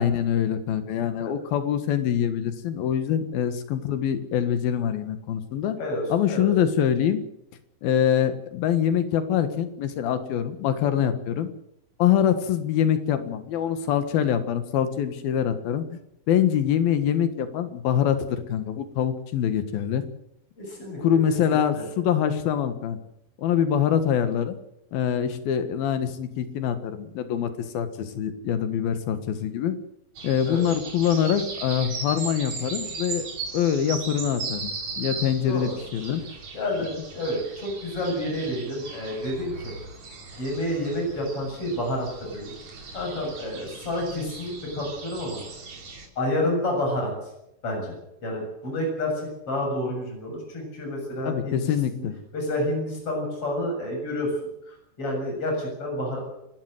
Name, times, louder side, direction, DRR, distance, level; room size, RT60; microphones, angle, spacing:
voice 1, 0.0-5.8 6.1-7.2 7.8-11.5 12.0-16.0 16.3-20.0 21.0-23.0 23.4-24.6 24.9-29.8 30.2-33.2 33.5-36.2 51.2-52.2, left 9 dB, 85° left, 10 dB, 3.4 m, -24 dB
voice 2, 5.8-6.5 20.6-21.0 21.5-21.9 30.4-30.6 34.1-34.2 35.4-35.8 36.5-39.7 40.4-42.5 42.9-45.4 46.2-47.3 47.6-51.7 52.3-54.3 54.6-56.2, left 1 dB, 40° left, 1 dB, 8.4 m, -29 dB
sound 1, 30.2-46.1, right 4 dB, 50° right, 4.4 m, -38 dB
28.5 x 12.5 x 7.9 m, 0.81 s
omnidirectional pair, 4.1 m